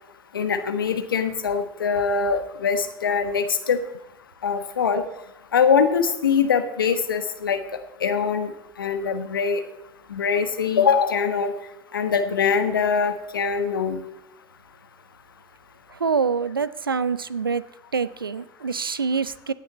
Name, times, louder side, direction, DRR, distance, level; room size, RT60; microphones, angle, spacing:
voice 1, 0.3-3.8 4.4-5.0 5.5-7.6 8.0-8.5 8.8-9.6 10.1-11.5 11.9-14.0, left 6 dB, 80° left, 9 dB, 1.2 m, -22 dB
voice 2, 16.0-17.6 17.9-19.5, right 5 dB, 90° right, 17 dB, 0.5 m, -25 dB
17.5 x 9.5 x 4.1 m, 0.92 s
figure-of-eight pair, 75°, 11 cm